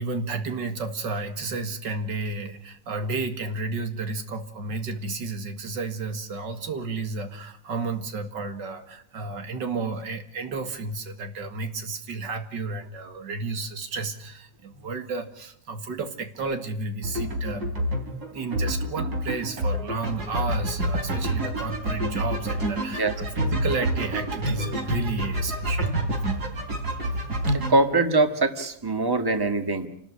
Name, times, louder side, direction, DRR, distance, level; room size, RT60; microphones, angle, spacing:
voice 1, 0.0-17.7 18.3-25.9, right 3 dB, 85° right, 8 dB, 2.5 m, -32 dB
sound 1, 17.0-27.7, right 1 dB, 65° right, 4.2 m, -28 dB
voice 2, 27.7-29.9, right 3 dB, 15° right, 7 dB, 1.6 m, -22 dB
29.0 x 13.0 x 9.8 m, 0.70 s
omnidirectional pair, 1.9 m